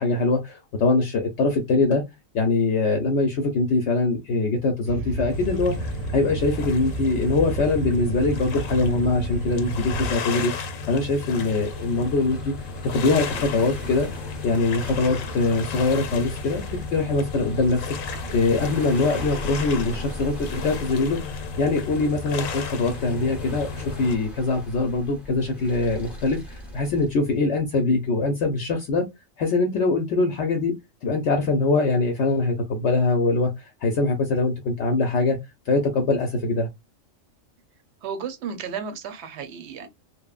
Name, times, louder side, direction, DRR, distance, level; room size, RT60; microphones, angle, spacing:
voice 1, 0.0-2.0 2.3-10.5 10.9-12.5 12.8-14.1 14.4-16.6 16.9-29.0 29.4-30.7 31.0-35.4 35.7-36.7, left 3 dB, 65° left, 0.8 m, -23 dB
sound 1, 4.8-10.2, right 2 dB, 90° right, 1.0 m, -31 dB
sound 2, 5.3-24.1, left 5 dB, 85° left, 1.0 m, -34 dB
sound 3, 11.3-27.4, equal, ahead, 0.5 m, -39 dB
voice 2, 38.0-39.9, right 6 dB, 65° right, 0.8 m, -33 dB
3.0 x 2.0 x 2.3 m
omnidirectional pair, 1.4 m